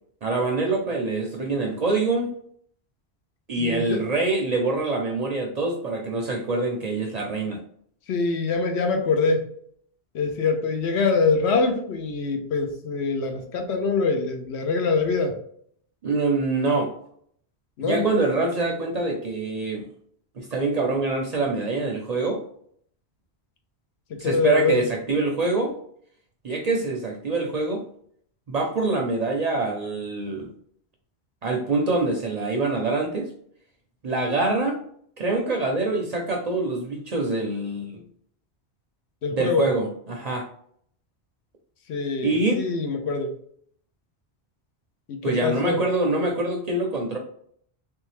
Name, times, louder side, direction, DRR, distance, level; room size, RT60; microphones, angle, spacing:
voice 1, 0.2-2.3 3.5-7.6 16.0-16.9 17.8-19.9 20.4-22.4 24.2-25.7 26.4-27.8 28.5-30.5 31.4-33.3 34.0-34.8 35.2-38.0 39.3-40.5 42.2-42.7 45.2-47.2, right 3 dB, 50° right, 2 dB, 0.5 m, -25 dB
voice 2, 3.6-4.0 8.1-9.4 10.1-15.4 17.8-18.1 24.1-24.8 39.2-39.7 41.9-43.3 45.1-45.8, left 4 dB, 80° left, 4 dB, 0.9 m, -24 dB
3.4 x 2.7 x 3.1 m, 0.64 s
omnidirectional pair, 1.1 m